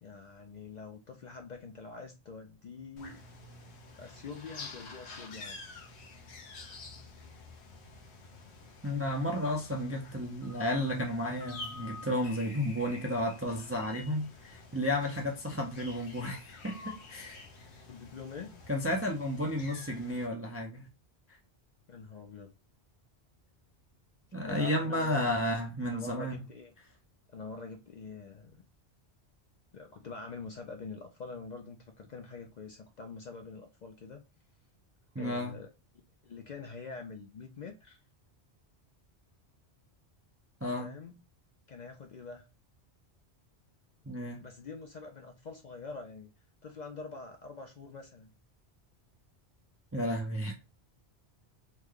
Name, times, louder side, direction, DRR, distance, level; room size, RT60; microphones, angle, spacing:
voice 1, 0.0-3.2 3.9-5.6 17.9-18.6 21.9-22.5 24.4-25.4 25.8-26.7 27.3-28.6 29.7-34.2 35.2-35.7 36.2-38.0 40.8-41.2 41.7-42.4 44.4-46.3 46.6-48.3, left 4 dB, 55° left, 0.5 m, -45 dB
sound 1, 3.0-20.3, left 3 dB, 75° left, 1.0 m, -49 dB
voice 2, 8.8-17.4 18.7-20.9 24.3-26.4 35.2-35.6 40.6-41.0 44.1-44.4 49.9-50.6, left 1 dB, 20° right, 0.3 m, -32 dB
3.1 x 2.2 x 3.5 m
omnidirectional pair, 1.1 m